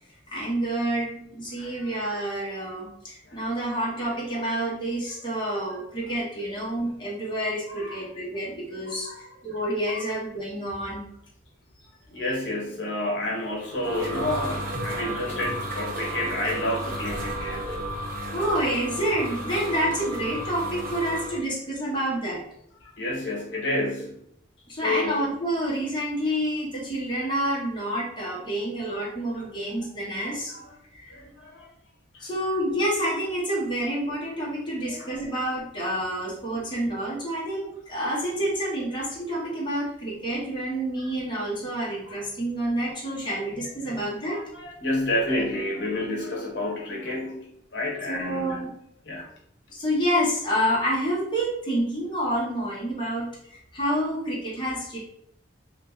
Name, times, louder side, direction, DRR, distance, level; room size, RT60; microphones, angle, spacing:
voice 1, 0.3-9.1 9.4-11.1 18.3-22.4 24.7-30.5 30.9-31.1 32.2-44.4 48.1-48.7 49.7-55.0, right 1 dB, 25° left, -6 dB, 1.1 m, -28 dB
voice 2, 1.5-1.9 2.5-2.6 3.3-3.4 4.3-4.5 7.7-8.0 8.7-9.2 9.9-10.1 12.1-17.8 22.8-24.2 24.7-25.2 28.9-29.0 30.5-30.7 31.1-31.7 32.1-32.2 34.9-35.1 42.0-42.2 43.2-43.4 43.9-44.0 44.3-48.6 49.1-49.3, left 1 dB, 65° left, -2 dB, 0.9 m, -30 dB
sound 1, 13.4-21.4, right 1 dB, 45° right, 1.3 m, -33 dB
3.0 x 2.5 x 3.9 m, 0.72 s
head